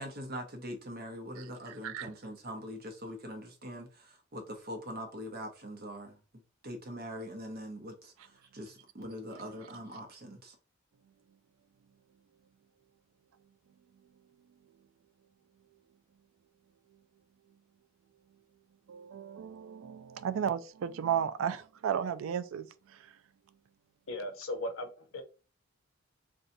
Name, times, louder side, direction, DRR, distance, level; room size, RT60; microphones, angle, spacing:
voice 1, 0.0-6.2 6.6-10.6, equal, 45° right, 0.8 m, -42 dB
voice 2, 18.9-23.0, right 8 dB, 75° right, 0.3 m, -34 dB
voice 3, 24.1-25.2, left 1 dB, 75° left, 0.7 m, -37 dB
2.6 x 2.3 x 4.0 m
head